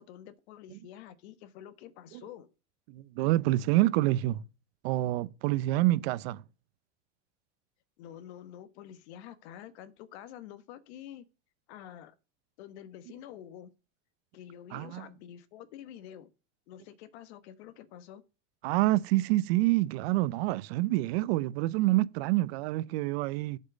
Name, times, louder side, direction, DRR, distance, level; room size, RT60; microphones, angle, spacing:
voice 1, 0.0-2.5 8.0-11.3 11.7-12.1 12.6-13.7 14.3-16.3 16.7-18.2, left 10 dB, 65° left, 1.3 m, -48 dB
voice 2, 2.9-4.4 4.8-6.4 14.7-15.0 18.6-23.6, right 17 dB, 60° right, 0.6 m, -27 dB
7.8 x 5.5 x 6.1 m
supercardioid pair, 150°, 36 cm